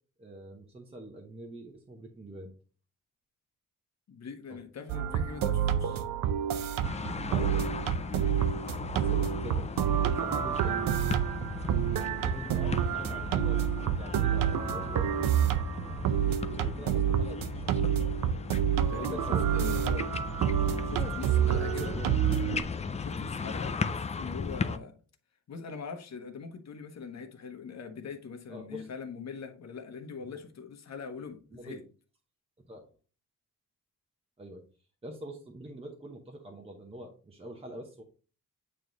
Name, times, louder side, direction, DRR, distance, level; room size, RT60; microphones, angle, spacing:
voice 1, 0.2-2.5 4.5-4.6 7.3-7.7 8.9-10.9 11.9-15.2 15.8-17.9 18.9-20.0 21.5-22.2 28.5-28.9 30.3-30.4 31.5-31.8 32.6-32.9 34.4-34.6 35.0-38.0, right 1 dB, 20° right, 0.9 m, -45 dB
voice 2, 4.1-6.1 18.9-20.0 20.6-21.9 23.0-25.0 25.5-31.8, left 5 dB, 50° left, 1.1 m, -42 dB
sound 1, 4.9-22.6, right 9 dB, 85° right, 0.7 m, -28 dB
sound 2, 6.8-24.8, left 5 dB, 20° left, 0.3 m, -37 dB
9.0 x 3.2 x 3.9 m
wide cardioid pair, 135°, 33 cm